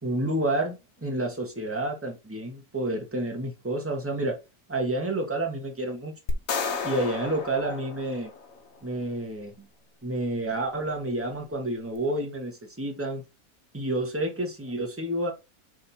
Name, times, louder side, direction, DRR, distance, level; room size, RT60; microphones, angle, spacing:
voice 1, 0.0-4.4 4.7-6.1 6.8-8.3 8.8-9.7 10.0-13.2 13.7-15.3, right 1 dB, 10° right, 1.5 m, -29 dB
sound 1, 6.3-8.7, left 4 dB, 70° left, 1.4 m, -32 dB
6.5 x 3.5 x 4.4 m
omnidirectional pair, 1.5 m